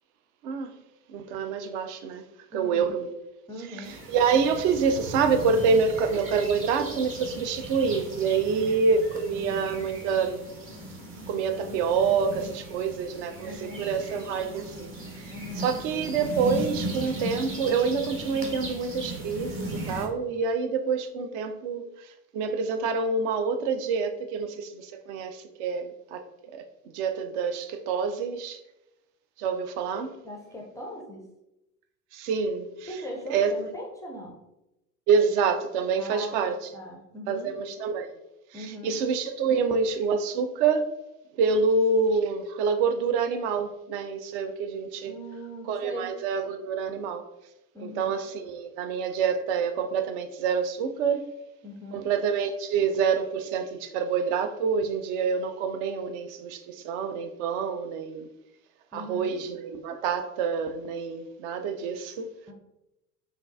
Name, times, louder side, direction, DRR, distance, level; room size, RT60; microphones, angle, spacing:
voice 1, 0.4-0.8 1.1-2.2 2.5-3.1 4.1-10.5 11.3-14.9 15.6-26.6 26.9-28.6 29.4-30.2 32.1-32.9 33.3-33.5 35.1-36.6 37.3-38.1 38.5-40.9 41.4-45.1 45.7-47.2 47.8-51.3 51.9-58.3 58.9-62.3, right 5 dB, 50° right, 0.5 m, -27 dB
voice 2, 2.5-3.0 3.5-4.0 8.4-8.9 13.4-13.9 15.3-15.7 30.2-31.3 32.9-34.4 36.0-37.5 38.5-39.0 45.1-46.2 47.7-48.2 51.6-52.1 58.9-59.4 62.5-62.6, equal, 10° left, 0.4 m, -40 dB
sound 1, 3.8-20.1, right 1 dB, 30° right, 0.9 m, -37 dB
5.7 x 2.4 x 2.5 m
figure-of-eight pair, 70°, 46 cm